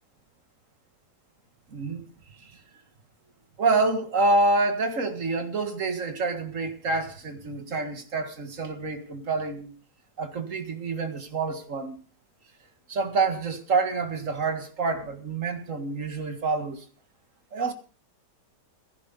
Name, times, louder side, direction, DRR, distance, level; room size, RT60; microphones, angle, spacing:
voice 1, 1.7-2.0 2.4-2.6 3.6-9.7 10.2-12.0 12.9-16.8 17.5-17.7, right 3 dB, 45° right, 2.1 m, -27 dB
16.0 x 14.5 x 4.0 m
omnidirectional pair, 1.9 m